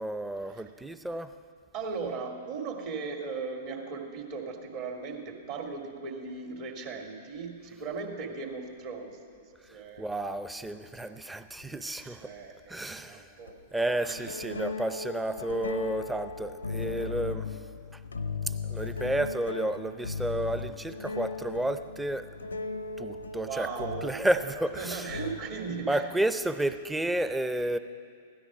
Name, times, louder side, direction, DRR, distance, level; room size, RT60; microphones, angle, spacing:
voice 1, 0.0-1.3 9.6-12.3 12.7-13.3 13.7-17.6 17.9-18.0 18.4-22.3 23.0-25.1 25.9-27.8, right 1 dB, 5° right, 11 dB, 0.6 m, -31 dB
voice 2, 1.7-9.1 9.7-10.1 11.0-11.1 12.0-14.3 23.3-24.2 24.8-26.1, right 4 dB, 50° right, 1 dB, 2.3 m, -38 dB
sound 1, 10.0-10.1 11.6-11.7 13.4-13.6 14.2-25.7, left 4 dB, 85° left, 0.7 m, -37 dB
16.0 x 12.5 x 4.9 m, 2.3 s
figure-of-eight pair, 105°, 0 cm